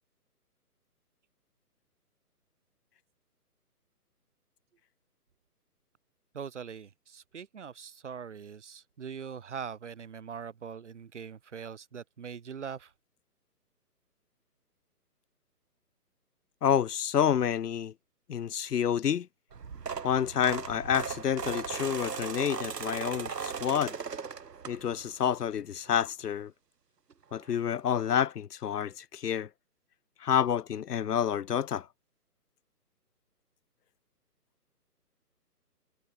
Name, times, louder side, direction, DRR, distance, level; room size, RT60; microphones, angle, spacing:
voice 1, 6.3-12.9, right 7 dB, 45° right, 4.0 m, -42 dB
voice 2, 16.6-17.9 18.3-19.3 20.0-23.9 24.7-26.5 27.3-29.5 30.2-31.9, left 9 dB, 75° left, 1.0 m, -29 dB
sound 1, 19.5-25.1 25.6-25.9 27.1-27.2 27.4-27.5 27.9-28.0, right 6 dB, 85° right, 2.6 m, -38 dB
hypercardioid pair, 175°, 47 cm